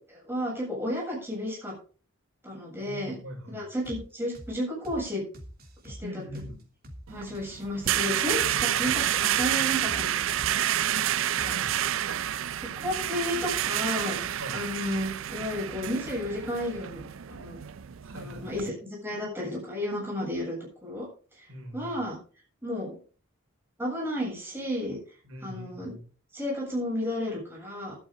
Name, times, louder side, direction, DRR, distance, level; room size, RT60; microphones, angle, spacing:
voice 1, 0.1-1.7 2.4-3.2 3.5-5.2 5.8-6.1 7.1-10.2 11.4-11.5 12.8-14.2 14.5-17.6 18.1-18.7 19.0-20.6 20.8-21.1 21.4-21.5 21.7-22.2 22.6-23.0 23.8-25.0 25.4-25.9 26.3-27.9, left 1 dB, 10° right, -3 dB, 7.8 m, -32 dB
voice 2, 2.8-3.7 6.0-6.6 8.4-8.9 10.9-11.1 11.4-11.8 12.3-12.4 14.4-14.7 18.0-18.7 21.5-22.1 25.2-26.0, equal, 85° right, 2 dB, 5.1 m, -42 dB
sound 1, 3.8-4.0 4.3-4.5 4.8-5.0 5.3-7.0 7.3-7.4 7.8-8.0 8.3-8.5 8.8-9.0 9.3-10.9 11.3-11.8, equal, 45° right, 2.8 m, -44 dB
sound 2, 7.1-18.7, right 11 dB, 65° right, 0.4 m, -29 dB
13.0 x 12.0 x 3.8 m, 0.39 s
head